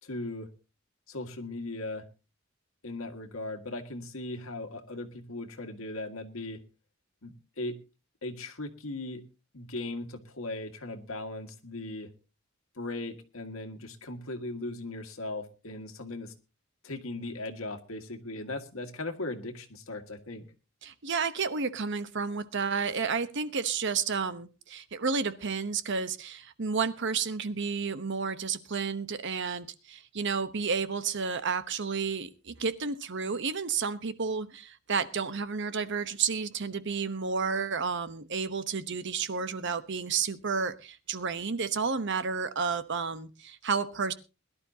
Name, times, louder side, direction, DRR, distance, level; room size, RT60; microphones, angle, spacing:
voice 1, 0.0-0.5 1.1-2.1 2.8-6.6 7.2-7.8 8.2-9.2 9.5-12.1 12.8-16.3 16.8-20.5, left 2 dB, 85° left, 5 dB, 1.9 m, -38 dB
voice 2, 20.8-44.1, right 5 dB, 60° right, 12 dB, 1.0 m, -31 dB
21.5 x 11.5 x 2.8 m, 0.30 s
head